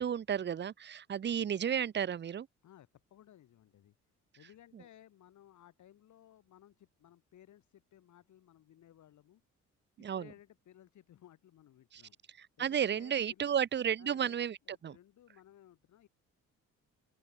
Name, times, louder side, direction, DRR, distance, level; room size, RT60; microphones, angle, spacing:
voice 1, 0.0-2.5 10.0-10.2 11.9-12.0 12.4-14.6 14.8-15.0, right 8 dB, 35° right, 0.7 m, -33 dB
voice 2, 2.6-3.9 4.4-9.4 10.0-12.2 12.6-13.6 14.0-14.4 14.6-16.1, left 11 dB, 70° left, 4.2 m, -59 dB
open air
cardioid pair, 90°, 30 cm